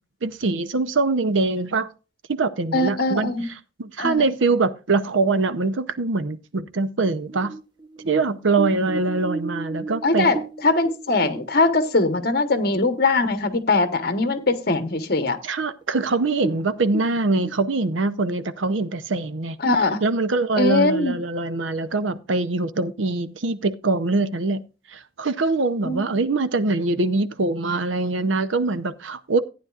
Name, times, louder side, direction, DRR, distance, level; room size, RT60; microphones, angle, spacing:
voice 1, 0.2-1.9 2.3-3.5 3.8-7.5 8.0-10.3 15.4-19.6 20.0-24.6 24.9-29.4, right 3 dB, 90° right, 0.7 m, -23 dB
voice 2, 2.7-3.5 4.0-4.2 10.0-15.4 19.6-20.0 20.5-21.1 25.8-26.0, left 3 dB, 55° left, 1.1 m, -21 dB
sound 1, 7.0-12.9 13.2-13.3 13.7-14.3 14.7-14.8 15.4-15.5 15.8-16.0 16.3-17.5, right 3 dB, 25° right, 0.8 m, -34 dB
14.5 x 9.5 x 2.4 m
head